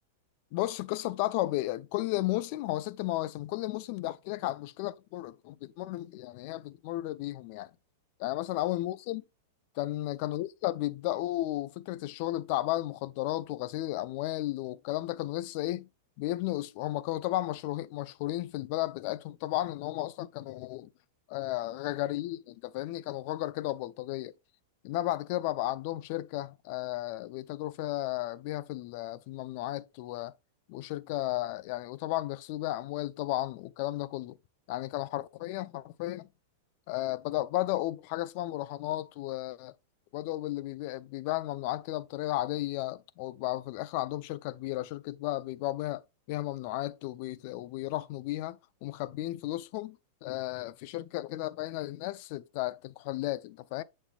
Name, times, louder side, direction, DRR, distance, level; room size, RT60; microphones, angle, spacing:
voice 1, 0.5-7.7 8.2-9.2 9.8-15.9 16.2-20.9 21.3-24.3 24.8-30.3 30.7-34.4 34.7-36.3 36.9-39.7 40.1-46.0 46.3-53.8, left 16 dB, 55° left, 0.4 m, -34 dB
8.1 x 5.3 x 2.3 m
hypercardioid pair, 120°, 0 cm